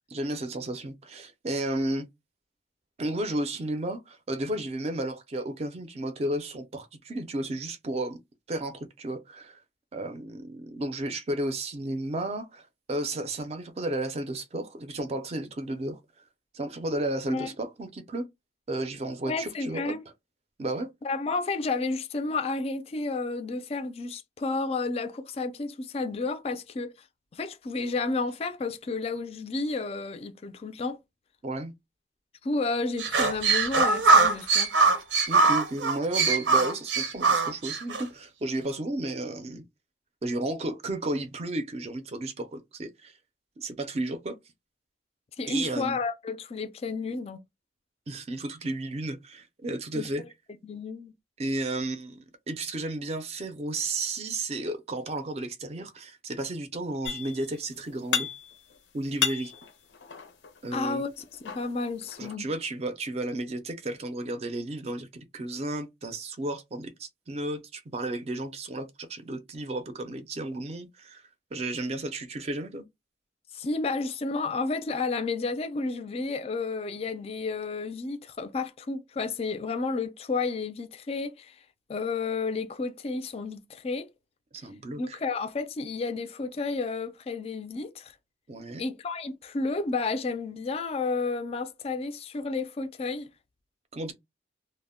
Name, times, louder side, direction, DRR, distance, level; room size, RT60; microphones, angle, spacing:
voice 1, 0.1-2.1 3.0-8.2 8.5-9.6 9.9-16.0 16.5-18.3 18.7-19.9 20.6-20.9 31.4-31.7 35.3-39.6 40.2-43.1 43.6-44.4 45.5-46.0 48.1-50.2 51.4-58.3 58.9-59.5 60.6-61.0 62.2-71.2 71.5-72.9 84.5-85.2 88.5-88.8 93.9-94.1, right 1 dB, 35° right, 0.4 m, -33 dB
voice 2, 19.3-20.0 21.0-26.9 27.3-31.0 32.4-34.7 45.4-47.4 49.9-50.1 50.6-51.1 60.7-62.5 73.5-81.6 81.9-84.1 85.0-88.1 88.8-93.3, left 3 dB, 35° left, 0.3 m, -31 dB
sound 1, 33.0-38.0, right 4 dB, 90° right, 0.6 m, -22 dB
sound 2, 57.0-57.6 57.8-58.7 59.0-60.6 61.2-62.3, left 8 dB, 85° left, 0.6 m, -32 dB
2.1 x 2.0 x 3.5 m
head